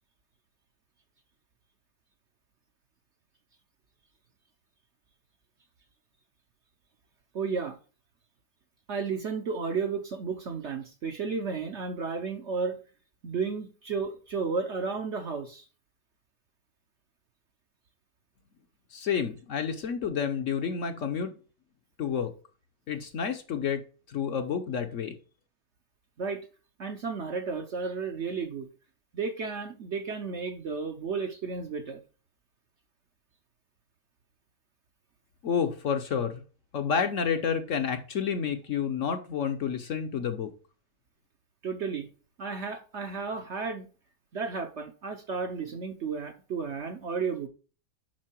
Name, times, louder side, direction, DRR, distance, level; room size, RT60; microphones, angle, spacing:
voice 1, 7.3-7.8 8.9-12.8 13.2-15.6 26.2-26.4 26.8-28.7 29.1-32.0 41.6-42.1 42.4-43.9 44.3-47.5, right 5 dB, 55° right, 0.9 m, -33 dB
voice 2, 18.9-21.3 22.0-22.3 22.9-23.8 24.1-25.1 35.4-36.4 36.7-40.5, left 7 dB, 55° left, 1.0 m, -29 dB
7.5 x 5.5 x 4.4 m
omnidirectional pair, 1.8 m